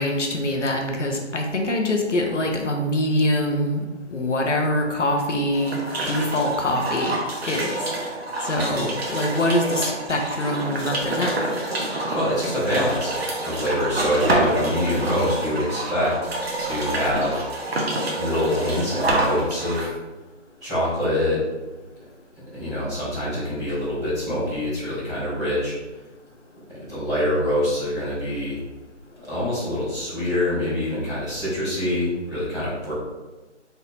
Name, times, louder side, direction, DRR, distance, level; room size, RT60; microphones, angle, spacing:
voice 1, 0.0-3.8 4.1-5.8 6.1-7.2 7.4-7.8 8.4-11.4, left 1 dB, 75° left, 2 dB, 0.9 m, -24 dB
sound 1, 5.5-19.9, right 2 dB, 55° right, 1.0 m, -27 dB
voice 2, 12.1-13.1 13.4-16.2 16.6-17.4 18.2-19.9 20.6-21.4 22.5-25.7 26.7-28.6 29.1-32.9, left 1 dB, 5° right, -19 dB, 1.1 m, -25 dB
4.1 x 4.0 x 2.6 m, 1.1 s
figure-of-eight pair, 165°, 36 cm